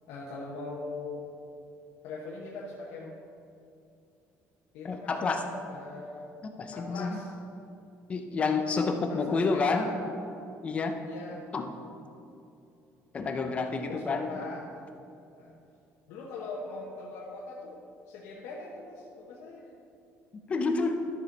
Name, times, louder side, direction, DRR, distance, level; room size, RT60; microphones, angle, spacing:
voice 1, 0.1-1.2 2.0-3.2 4.7-5.4 5.7-6.3 6.7-7.3 8.9-9.9 11.0-11.4 13.9-14.6 15.3-15.5 16.1-19.7, left 3 dB, 80° left, -4 dB, 1.2 m, -41 dB
voice 2, 4.8-5.4 6.6-7.2 8.1-9.9 10.6-10.9 11.5-11.7 13.1-14.4 20.5-21.1, left 4 dB, 25° left, 5 dB, 0.6 m, -29 dB
13.0 x 6.3 x 4.0 m, 2.6 s
cardioid pair, 180°, 5 cm